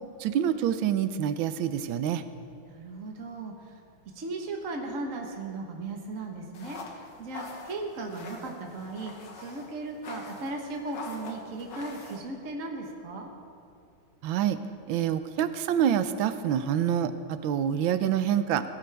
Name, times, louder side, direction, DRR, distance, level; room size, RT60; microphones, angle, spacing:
voice 1, 0.2-2.2 14.2-14.6 14.9-18.6, right 9 dB, 75° right, 11 dB, 1.4 m, -26 dB
voice 2, 2.7-3.8 4.1-13.3, right 2 dB, 45° right, 1 dB, 1.4 m, -37 dB
sound 1, 6.5-12.2, left 3 dB, 60° left, 1.9 m, -44 dB
18.0 x 16.5 x 3.4 m, 2.4 s
omnidirectional pair, 2.3 m